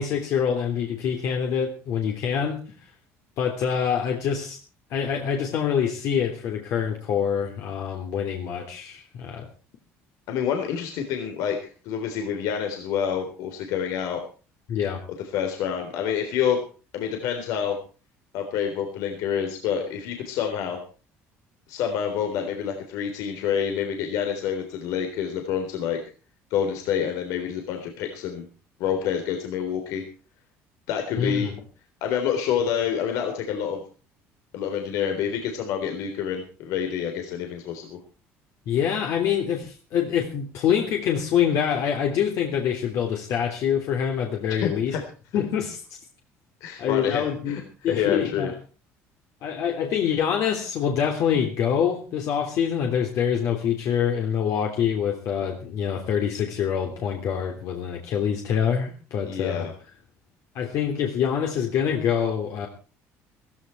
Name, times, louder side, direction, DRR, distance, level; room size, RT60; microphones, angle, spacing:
voice 1, 0.0-2.6 3.4-4.6 4.9-9.5 14.7-15.0 31.2-31.5 38.7-45.0 45.3-46.0 46.8-48.5 49.4-59.7 60.5-62.7, left 8 dB, 65° left, 2 dB, 3.3 m, -25 dB
voice 2, 10.3-14.2 15.3-16.6 16.9-17.8 18.3-20.8 21.7-26.0 26.5-28.5 28.8-30.0 30.9-31.5 32.0-33.8 34.5-38.0 44.6-45.0 46.6-47.6 47.9-48.5 59.3-59.7, left 8 dB, 80° left, 4 dB, 3.7 m, -27 dB
16.0 x 16.0 x 4.6 m, 0.38 s
cardioid pair, 125°, 6 cm